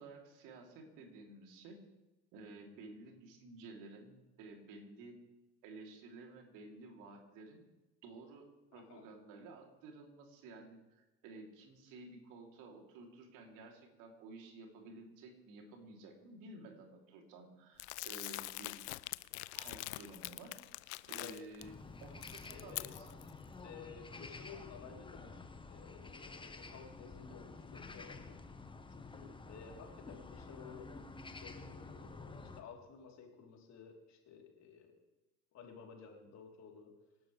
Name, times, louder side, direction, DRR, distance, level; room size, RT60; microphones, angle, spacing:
voice 1, 0.0-1.8 2.3-5.2 5.6-7.6 8.0-19.0 19.5-20.6 20.8-21.7 22.0-23.1, right 3 dB, 55° right, 1 dB, 3.6 m, -53 dB
voice 2, 8.7-9.0 21.2-21.4 22.5-22.9 23.6-28.2 28.9-30.9 31.4-34.9 35.5-36.9, left 6 dB, 45° left, 0 dB, 4.0 m, -54 dB
Crumpling crinkling, 17.8-21.6 22.0-23.3, left 20 dB, 65° left, 0.6 m, -44 dB
sound 1, 21.6-32.6, left 3 dB, 15° left, 1.4 m, -50 dB
26.0 x 12.0 x 3.5 m, 1.0 s
figure-of-eight pair, 60°, 36 cm